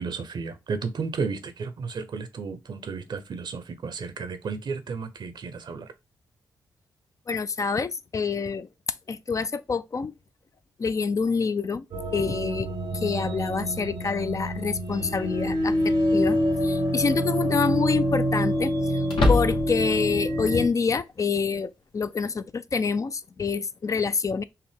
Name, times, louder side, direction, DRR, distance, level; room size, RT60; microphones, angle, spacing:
voice 1, 0.0-5.9, right 5 dB, 65° right, 0.8 m, -33 dB
voice 2, 7.3-8.7 9.1-10.1 10.8-11.9 12.1-24.4, left 5 dB, 40° left, 0.4 m, -27 dB
sound 1, 11.9-20.7, equal, 85° right, 0.9 m, -26 dB
sound 2, 14.5-14.6 16.4-16.8 17.1-17.2 19.0-19.9, left 2 dB, 80° left, 1.2 m, -24 dB
5.7 x 2.1 x 3.4 m
supercardioid pair, 45°, 8 cm